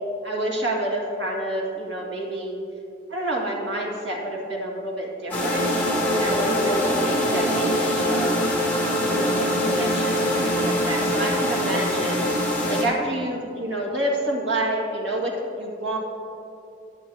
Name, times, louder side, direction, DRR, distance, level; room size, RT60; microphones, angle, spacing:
voice 1, 0.2-2.6 3.1-5.7 6.1-12.2 12.7-16.0, right 1 dB, 85° right, -2 dB, 2.0 m, -28 dB
sound 1, 5.3-12.8, equal, 10° left, 2.1 m, -23 dB
21.0 x 7.8 x 2.9 m, 2.7 s
head